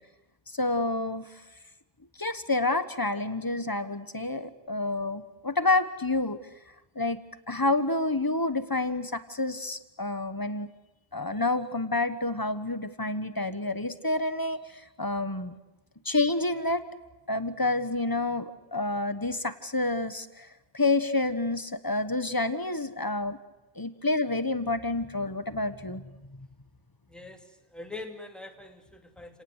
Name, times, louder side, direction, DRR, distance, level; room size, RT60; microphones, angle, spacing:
voice 1, 0.5-1.4 2.2-6.4 6.9-7.2 7.5-10.7 11.1-15.5 16.0-16.8 17.3-20.5 20.7-23.4 23.8-26.5, left 2 dB, 20° left, 11 dB, 1.3 m, -29 dB
voice 2, 27.1-29.4, left 2 dB, ahead, 3 dB, 2.6 m, -43 dB
29.5 x 18.5 x 8.1 m, 1.0 s
omnidirectional pair, 1.1 m